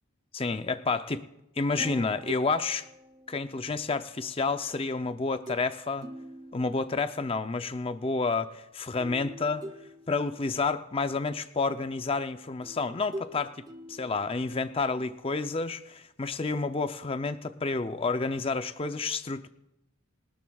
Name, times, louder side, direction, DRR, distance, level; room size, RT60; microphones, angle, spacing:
voice 1, 0.3-1.2 1.6-2.8 3.3-6.1 6.5-9.7 10.1-19.5, left 4 dB, 25° left, 10 dB, 0.5 m, -30 dB
sound 1, 1.8-4.1 5.5-5.7 6.0-7.3 9.0-10.7 12.6-14.9, equal, 20° right, 0.9 m, -44 dB
22.5 x 12.5 x 2.3 m, 0.85 s
head